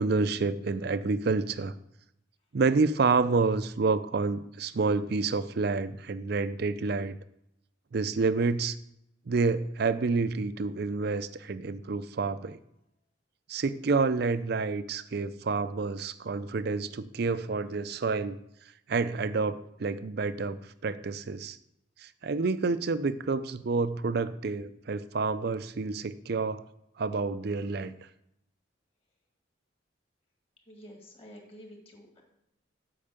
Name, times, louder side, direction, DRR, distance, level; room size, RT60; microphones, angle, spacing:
voice 1, 0.0-1.7 2.5-7.2 7.9-8.7 9.3-12.6 13.5-18.4 18.9-21.6 22.0-26.6 27.0-27.9, right 4 dB, 55° right, 14 dB, 0.5 m, -28 dB
voice 2, 30.7-32.2, equal, 30° left, 1 dB, 2.1 m, -49 dB
8.7 x 5.4 x 6.7 m, 0.80 s
head